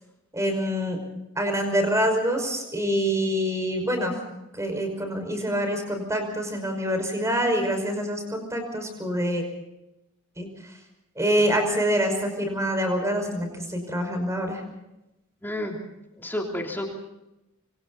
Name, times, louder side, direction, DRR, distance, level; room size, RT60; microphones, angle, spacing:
voice 1, 0.3-1.0 1.4-4.1 4.5-9.4 10.4-10.5 11.2-14.6, equal, 15° right, 5 dB, 5.5 m, -26 dB
voice 2, 15.4-15.8 16.2-16.9, left 1 dB, 10° left, 0 dB, 3.3 m, -30 dB
27.0 x 25.0 x 4.1 m, 0.93 s
head